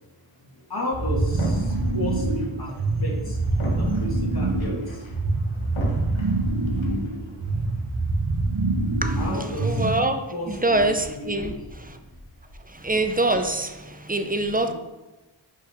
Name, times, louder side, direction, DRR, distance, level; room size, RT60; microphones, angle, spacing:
voice 1, 0.7-2.7 3.0-3.4 3.8-4.8 9.2-9.8 10.3-10.8 11.1-11.7 14.7-14.8, left 1 dB, 50° left, -3 dB, 2.0 m, -33 dB
sound 1, 0.9-10.2, right 2 dB, 75° right, 1.4 m, -25 dB
sound 2, 1.3-7.8, left 1 dB, 70° left, 1.5 m, -39 dB
voice 2, 9.0-10.2 10.5-11.5 11.9-12.0 12.7-14.7, right 2 dB, 20° right, 6 dB, 0.6 m, -25 dB
5.4 x 4.7 x 5.1 m, 1.1 s
wide cardioid pair, 75°, 48 cm